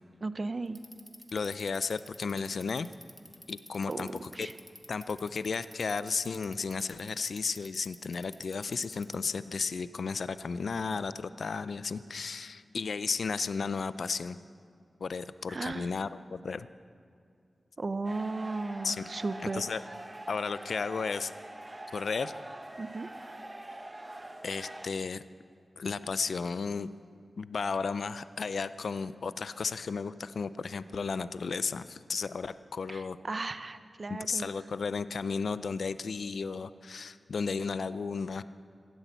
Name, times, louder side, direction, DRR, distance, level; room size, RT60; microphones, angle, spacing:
voice 1, 0.2-0.8 3.9-4.5 15.5-15.9 17.8-19.6 22.8-23.1 32.9-34.5, right 3 dB, 50° right, 12 dB, 0.8 m, -35 dB
Bicycle, 0.7-9.5, equal, ahead, 1.4 m, -52 dB
voice 2, 1.3-2.9 3.5-4.5 4.9-14.4 15.0-16.7 18.8-19.1 19.4-19.8 20.3-21.3 21.9-22.3 24.4-25.2 25.8-26.9 27.4-33.2 34.1-38.4, left 5 dB, 75° left, 14 dB, 0.4 m, -34 dB
sound 1, 18.0-24.9, right 1 dB, 25° right, 1.0 m, -44 dB
16.5 x 10.0 x 8.2 m, 2.3 s
cardioid pair, 50°, 0 cm